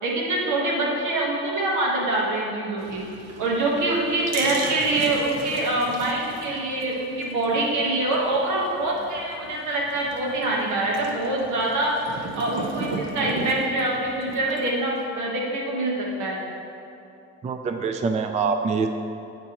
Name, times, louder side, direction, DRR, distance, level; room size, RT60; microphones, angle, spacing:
voice 1, 0.0-3.0 3.4-11.9 12.3-16.4, right 2 dB, 80° right, -2 dB, 1.4 m, -25 dB
sound 1, 2.8-15.0, right 3 dB, 60° right, 0.8 m, -36 dB
voice 2, 17.4-18.9, right 5 dB, 25° right, 6 dB, 0.3 m, -24 dB
9.4 x 4.5 x 3.0 m, 2.6 s
cardioid pair, 90°, 30 cm